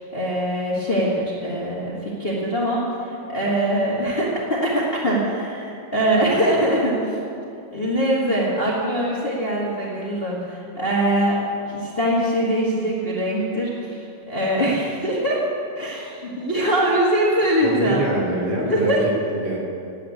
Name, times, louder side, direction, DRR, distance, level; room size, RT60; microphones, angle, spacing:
voice 1, 0.1-7.2 7.7-11.4 11.7-15.4 15.7-18.0 18.7-19.0, right 1 dB, 55° left, -6 dB, 0.6 m, -22 dB
voice 2, 17.6-19.6, right 1 dB, 45° right, -4 dB, 4.4 m, -25 dB
10.5 x 9.1 x 9.5 m, 2.5 s
omnidirectional pair, 4.5 m